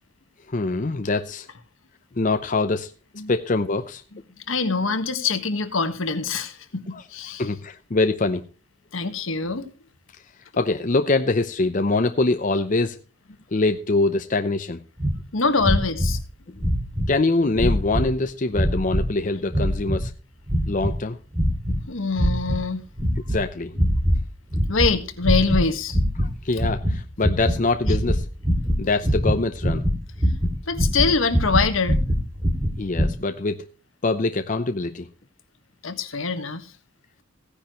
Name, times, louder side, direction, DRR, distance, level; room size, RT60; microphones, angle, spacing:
voice 1, 0.5-1.5 2.2-2.9 3.3-4.0 6.9-7.0 7.4-8.5 10.6-13.0 13.5-14.8 16.5-16.6 17.1-20.1 20.7-21.2 23.3-23.7 26.2-28.3 28.8-29.8 32.8-33.7 34.0-35.1, left 3 dB, 40° left, 0.6 m, -24 dB
voice 2, 4.4-7.4 8.9-9.6 15.3-16.2 21.9-22.8 24.7-26.0 30.7-32.0 35.8-36.7, left 4 dB, 75° left, 1.5 m, -24 dB
sound 1, 15.0-15.2 15.6-16.2 16.6-17.1 17.6-18.1 18.5-19.1 19.5-20.1 20.5-21.0 21.3-21.8 22.2-22.6 23.0-23.4 23.7-24.2 24.5-24.9 25.2-25.7 25.9-33.1, equal, 20° right, 2.4 m, -23 dB
16.5 x 10.0 x 3.0 m
head